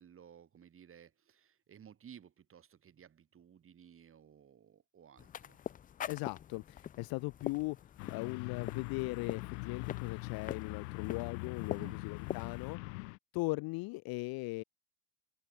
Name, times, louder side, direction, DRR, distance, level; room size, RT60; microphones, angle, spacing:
voice 1, 0.0-5.6 11.7-12.0, right 8 dB, 25° right, 6.6 m, -57 dB
sound 1, 5.2-12.8, left 9 dB, 20° left, 0.5 m, -45 dB
voice 2, 6.0-7.8 8.1-12.8 13.3-14.6, left 24 dB, 50° left, 0.8 m, -38 dB
sound 2, 8.0-13.2, left 29 dB, 80° left, 1.1 m, -42 dB
cardioid pair, 150°, 48 cm